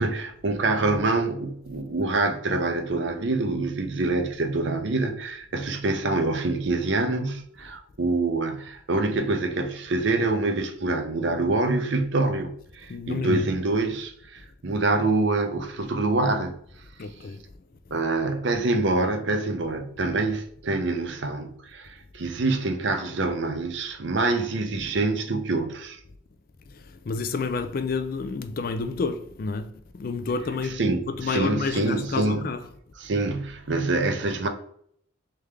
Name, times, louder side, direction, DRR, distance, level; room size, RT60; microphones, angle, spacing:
voice 1, 0.0-16.5 17.9-26.0 30.6-32.5 33.0-34.5, right 2 dB, 60° right, 0.6 m, -26 dB
voice 2, 12.9-13.4 17.0-17.4 27.1-29.7 30.0-30.8 31.1-32.6, left 4 dB, 45° left, 0.3 m, -29 dB
3.4 x 3.4 x 3.3 m
head